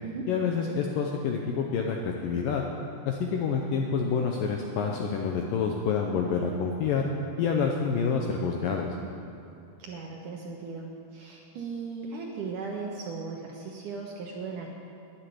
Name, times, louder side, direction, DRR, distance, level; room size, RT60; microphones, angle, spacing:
voice 1, 0.3-2.6 3.1-7.1 7.4-8.9, left 5 dB, 80° left, 1 dB, 2.0 m, -28 dB
voice 2, 9.8-14.7, right 4 dB, 70° right, -1 dB, 2.1 m, -37 dB
11.0 x 10.5 x 9.9 m, 2.7 s
omnidirectional pair, 4.9 m